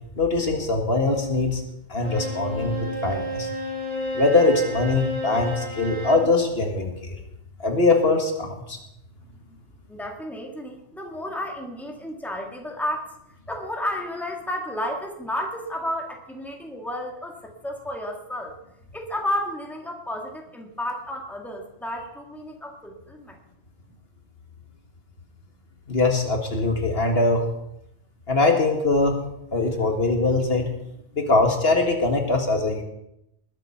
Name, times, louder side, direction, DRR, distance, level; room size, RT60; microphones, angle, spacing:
voice 1, 0.2-1.6 1.9-3.5 4.1-7.2 7.6-8.8 25.9-27.5 28.3-29.2 29.5-30.7 31.1-32.8, left 3 dB, 60° left, 3 dB, 2.0 m, -22 dB
Bowed string instrument, 2.0-6.3, equal, 40° right, 5.9 m, -31 dB
voice 2, 9.9-18.6 18.9-23.4, left 1 dB, ahead, 1 dB, 2.0 m, -32 dB
20.5 x 7.8 x 5.8 m, 0.82 s
omnidirectional pair, 1.2 m